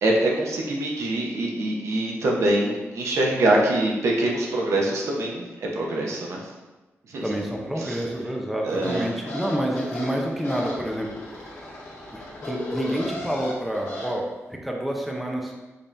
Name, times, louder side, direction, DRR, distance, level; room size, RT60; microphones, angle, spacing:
voice 1, 0.0-6.4 7.1-7.2 7.8-8.0 8.6-9.1, right 1 dB, 75° right, -1 dB, 0.8 m, -24 dB
voice 2, 7.2-11.1 12.1-15.5, equal, ahead, -1 dB, 0.5 m, -28 dB
sound 1, 8.7-14.1, left 1 dB, 60° left, 1.2 m, -35 dB
5.3 x 3.3 x 2.7 m, 1.2 s
wide cardioid pair, 170°, 5 cm